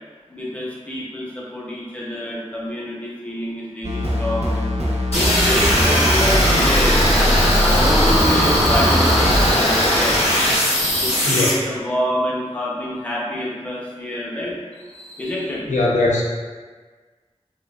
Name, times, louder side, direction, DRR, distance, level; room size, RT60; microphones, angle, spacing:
voice 1, 0.3-4.7 5.1-7.1 7.6-10.2 10.9-15.6, left 1 dB, 10° left, -6 dB, 0.5 m, -27 dB
sound 1, 3.8-9.5, equal, 65° right, 0.5 m, -21 dB
sound 2, 5.1-11.5, equal, 60° left, 0.7 m, -18 dB
voice 2, 15.7-16.2, left 2 dB, 90° left, -4 dB, 0.4 m, -19 dB
2.6 x 2.2 x 2.2 m, 1.4 s
wide cardioid pair, 50°, 12 cm